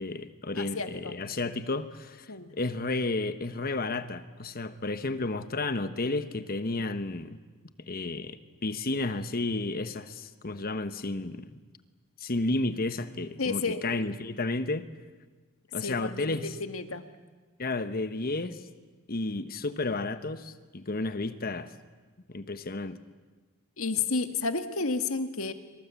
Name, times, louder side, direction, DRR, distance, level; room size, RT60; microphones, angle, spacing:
voice 1, 0.0-7.4 7.9-11.5 12.2-14.9 15.7-16.5 17.6-18.6 19.1-21.7 22.3-23.0, left 2 dB, 45° left, 10 dB, 1.1 m, -32 dB
voice 2, 0.6-1.1 2.3-2.6 13.4-13.8 15.8-17.0 23.8-25.5, left 4 dB, 80° left, 8 dB, 1.8 m, -31 dB
25.5 x 25.0 x 8.4 m, 1.4 s
head